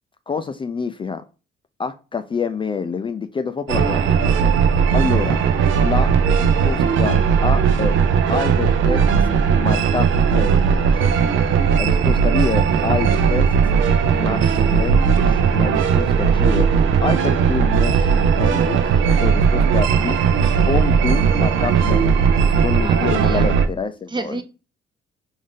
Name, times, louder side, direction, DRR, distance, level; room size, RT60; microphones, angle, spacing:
voice 1, 0.3-1.2 1.8-4.2 4.9-5.4 5.8-8.0 8.3-9.3 9.6-11.1 11.8-13.5 14.1-16.7 17.0-20.2 20.7-24.4, left 5 dB, 25° left, 0.3 m, -27 dB
sound 1, 3.7-23.7, right 6 dB, 80° right, 0.6 m, -17 dB
voice 2, 22.8-23.5 24.1-24.4, right 3 dB, 25° right, 0.6 m, -30 dB
3.5 x 2.7 x 3.6 m
cardioid pair, 90°, 20 cm